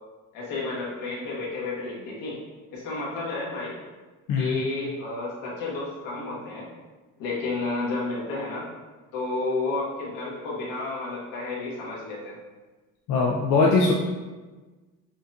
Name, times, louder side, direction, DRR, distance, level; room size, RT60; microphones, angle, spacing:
voice 1, 0.3-2.4 2.7-3.7 4.4-6.7 7.2-8.7 9.1-12.3, left 3 dB, 80° left, -5 dB, 1.5 m, -31 dB
voice 2, 13.1-13.9, left 3 dB, 65° left, -3 dB, 0.6 m, -21 dB
6.1 x 2.4 x 2.7 m, 1.3 s
cardioid pair, 110°, 33 cm